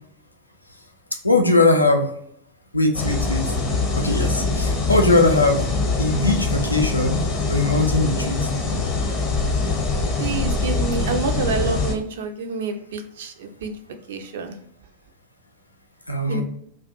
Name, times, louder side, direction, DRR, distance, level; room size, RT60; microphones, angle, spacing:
voice 1, 1.2-2.1 2.7-3.4 4.0-5.7 6.0-7.2 7.5-8.5 16.1-16.4, left 2 dB, 85° left, 4 dB, 0.4 m, -20 dB
sound 1, 2.9-11.9, left 3 dB, 35° left, 0.7 m, -23 dB
voice 2, 10.2-13.7 14.1-14.6 16.3-16.4, right 5 dB, 55° right, 6 dB, 0.4 m, -28 dB
2.3 x 2.1 x 2.8 m, 0.71 s
figure-of-eight pair, 90°, 0 cm